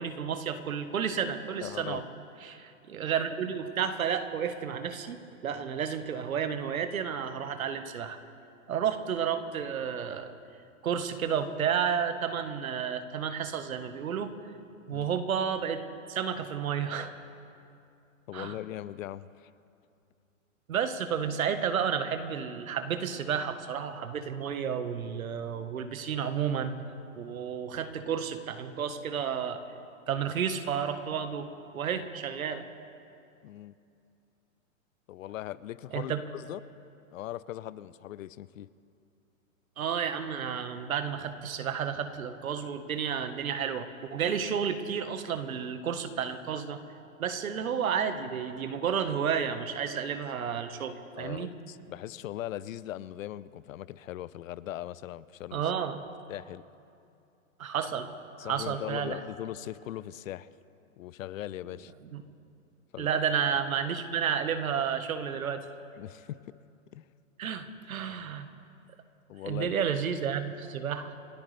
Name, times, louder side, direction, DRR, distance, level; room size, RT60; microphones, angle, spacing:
voice 1, 0.0-2.0 2.4-5.2 5.4-8.2 8.7-10.3 10.8-14.3 14.9-15.8 16.1-17.1 18.3-18.6 20.7-26.7 27.2-29.6 30.1-31.5 31.7-32.7 35.9-36.2 39.8-46.8 47.2-51.5 55.5-56.0 57.6-58.1 58.4-59.2 62.1-62.2 63.0-65.7 67.4-68.5 69.4-71.1, right 7 dB, 85° right, 9 dB, 1.4 m, -31 dB
voice 2, 1.6-2.0 14.9-15.1 18.3-19.5 33.4-33.8 35.1-36.6 37.1-38.7 51.2-55.7 56.3-56.6 58.4-60.5 61.0-61.9 62.9-63.2 63.9-64.0 66.0-66.6 66.9-67.1 69.3-69.7, left 13 dB, 70° left, 18 dB, 0.7 m, -40 dB
29.5 x 13.5 x 3.4 m, 2.6 s
hypercardioid pair, 135°, 41 cm